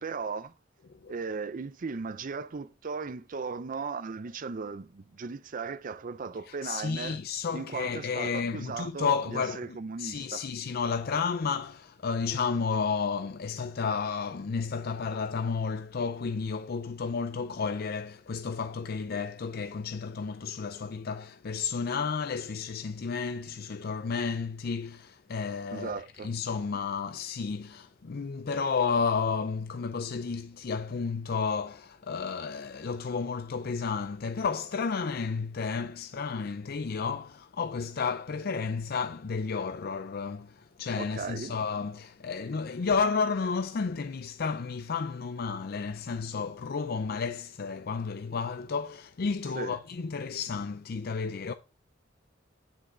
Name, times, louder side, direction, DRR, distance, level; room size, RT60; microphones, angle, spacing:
voice 1, 0.0-0.5 1.1-7.2 7.5-10.5 25.7-26.3 41.0-41.6 49.6-49.8, right 4 dB, 45° right, 0.5 m, -37 dB
voice 2, 6.5-51.5, left 5 dB, 55° left, 0.5 m, -32 dB
10.0 x 6.4 x 3.8 m
head